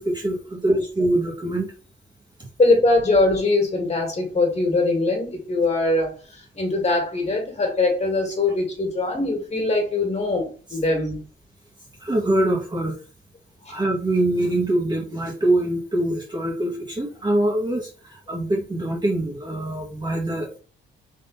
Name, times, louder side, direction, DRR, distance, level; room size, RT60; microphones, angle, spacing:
voice 1, 0.0-1.7 12.0-13.0 13.7-20.6, right 1 dB, 20° right, -1 dB, 1.5 m, -24 dB
voice 2, 2.6-11.2 13.6-13.8, left 2 dB, 35° left, 1 dB, 2.1 m, -22 dB
3.8 x 3.0 x 4.1 m, 0.36 s
cardioid pair, 90°, 20 cm